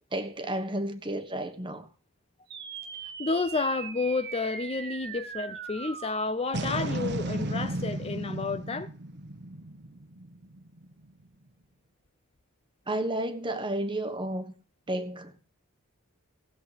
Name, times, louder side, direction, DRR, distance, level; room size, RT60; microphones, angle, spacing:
voice 1, 0.1-1.9 12.9-14.5 14.9-15.4, right 1 dB, 20° right, 1.2 m, -32 dB
sound 1, 2.5-11.1, right 2 dB, 50° right, 1.1 m, -36 dB
voice 2, 3.2-8.9, left 3 dB, 25° left, 0.5 m, -30 dB
16.5 x 7.7 x 5.0 m
head